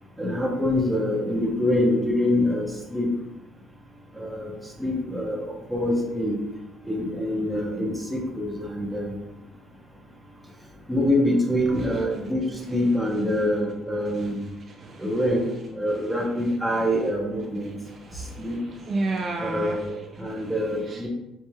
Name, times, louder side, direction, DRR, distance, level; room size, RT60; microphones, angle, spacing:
voice 1, 0.2-3.1 4.1-4.5 4.8-5.4 5.7-6.4 6.8-9.2 10.9-14.4 15.0-17.7 18.4-18.6 19.4-21.1, left 1 dB, 5° right, -2 dB, 0.7 m, -25 dB
voice 2, 17.9-19.8 20.2-20.5 20.9-21.0, right 2 dB, 35° right, 1 dB, 0.3 m, -32 dB
4.2 x 3.1 x 2.2 m, 0.92 s
cardioid pair, 140°, 0 cm